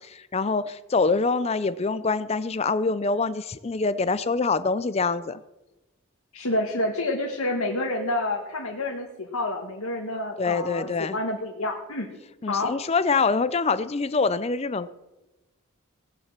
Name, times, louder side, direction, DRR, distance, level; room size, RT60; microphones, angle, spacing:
voice 1, 0.0-5.4 10.4-11.2 12.4-14.9, left 4 dB, 30° left, 15 dB, 0.4 m, -25 dB
voice 2, 6.3-12.1 12.5-12.7, left 2 dB, 75° left, 0 dB, 1.7 m, -28 dB
18.0 x 7.3 x 7.4 m, 1.0 s
head